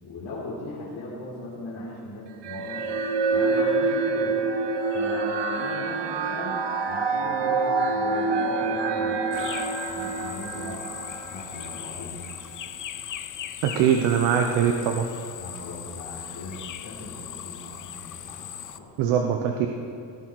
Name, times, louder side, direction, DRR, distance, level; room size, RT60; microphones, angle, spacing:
voice 1, 0.0-4.4 4.9-9.5 9.9-12.3 15.4-18.9, left 2 dB, 65° left, -8 dB, 3.9 m, -39 dB
sound 1, 2.4-11.9, right 3 dB, 60° right, 1.2 m, -26 dB
sound 2, 9.3-18.8, left 10 dB, 40° left, 0.7 m, -39 dB
voice 2, 13.6-15.1 19.0-19.7, right 8 dB, 85° right, 4 dB, 1.1 m, -22 dB
18.5 x 12.5 x 4.8 m, 2.4 s
cardioid pair, 95°, 47 cm